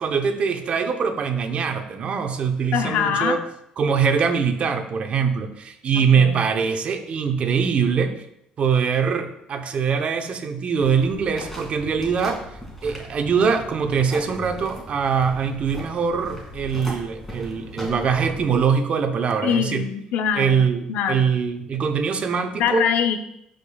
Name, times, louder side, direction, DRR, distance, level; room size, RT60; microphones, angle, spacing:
voice 1, 0.0-3.4 3.8-8.2 8.6-12.4 12.8-19.8 20.3-22.9, right 6 dB, 50° right, 6 dB, 0.8 m, -23 dB
voice 2, 2.7-3.4 5.9-6.4 19.4-21.3 22.6-23.2, left 8 dB, 80° left, 8 dB, 0.6 m, -24 dB
sound 1, 10.8-18.6, equal, 5° left, 2.4 m, -38 dB
12.0 x 5.2 x 2.3 m, 0.79 s
cardioid pair, 110°, 3 cm